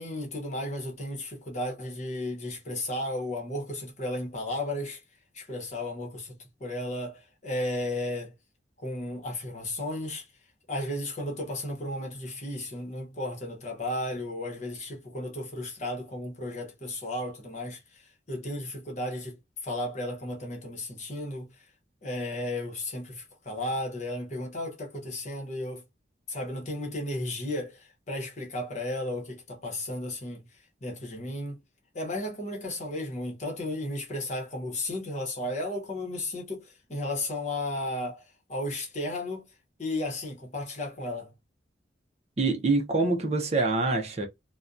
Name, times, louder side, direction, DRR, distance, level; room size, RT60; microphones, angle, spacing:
voice 1, 0.0-5.0 5.3-8.3 8.8-10.3 10.7-21.6 22.0-25.8 26.3-31.6 31.9-39.5 39.8-41.3, left 1 dB, 40° left, 0.9 m, -34 dB
voice 2, 42.4-44.3, right 3 dB, 35° right, 0.5 m, -25 dB
2.6 x 2.1 x 2.3 m
head